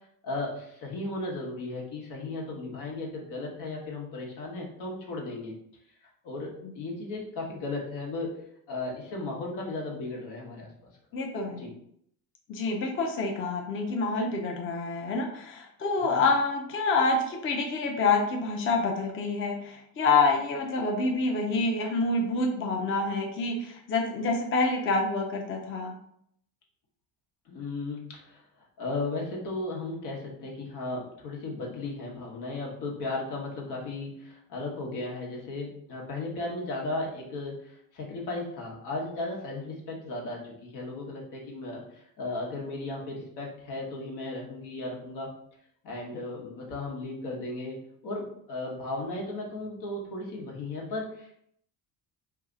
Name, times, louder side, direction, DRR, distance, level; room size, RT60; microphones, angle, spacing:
voice 1, 0.2-5.5 6.2-8.4 8.7-10.7 11.6-11.7 16.0-16.2 27.5-28.4 28.8-41.8 42.2-45.3 45.8-47.8 48.0-51.3, left 2 dB, 80° left, -2 dB, 1.2 m, -35 dB
voice 2, 11.1-11.7 12.5-25.9, left 3 dB, 30° left, 1 dB, 0.5 m, -27 dB
2.8 x 2.3 x 3.7 m, 0.69 s
cardioid pair, 120°, 39 cm